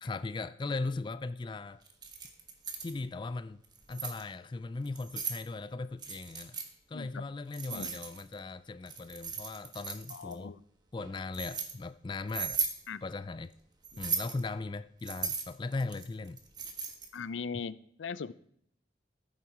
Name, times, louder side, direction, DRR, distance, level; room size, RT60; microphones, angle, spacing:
voice 1, 0.0-1.8 2.8-3.6 3.9-6.6 6.9-10.5 10.9-12.6 13.0-13.5 14.0-16.4, left 3 dB, 25° left, 0.3 m, -38 dB
Keys jangling, 1.9-2.9 3.6-4.2 4.9-5.4 6.0-6.7 7.5-8.4 8.9-10.3 11.0-11.7 12.3-12.8 13.8-14.4 15.0-17.2, right 5 dB, 25° right, 1.3 m, -37 dB
voice 2, 6.9-7.3 7.7-7.9 10.1-10.6 12.9-13.0 17.1-18.3, left 5 dB, 85° left, 0.5 m, -39 dB
14.0 x 7.4 x 4.8 m
head